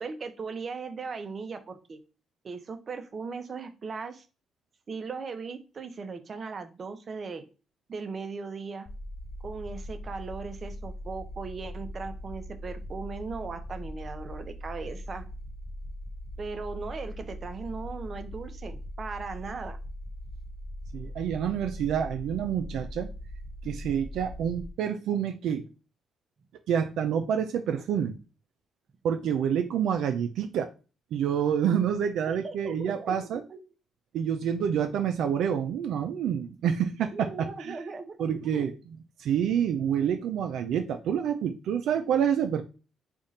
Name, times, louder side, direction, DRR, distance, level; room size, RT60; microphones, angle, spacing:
voice 1, 0.0-2.0 2.4-4.3 4.9-7.4 7.9-8.9 9.4-15.3 16.4-19.8 32.3-33.6 37.1-38.6, right 4 dB, 45° right, 0.6 m, -38 dB
sound 1, 8.9-24.7, equal, 25° left, 0.6 m, -40 dB
voice 2, 20.9-23.1 23.6-25.6 26.7-28.2 29.0-30.7 31.1-33.4 34.1-37.8 38.2-38.7 39.2-42.6, right 8 dB, 80° right, 0.4 m, -28 dB
3.5 x 2.4 x 4.0 m
cardioid pair, 90°, 0 cm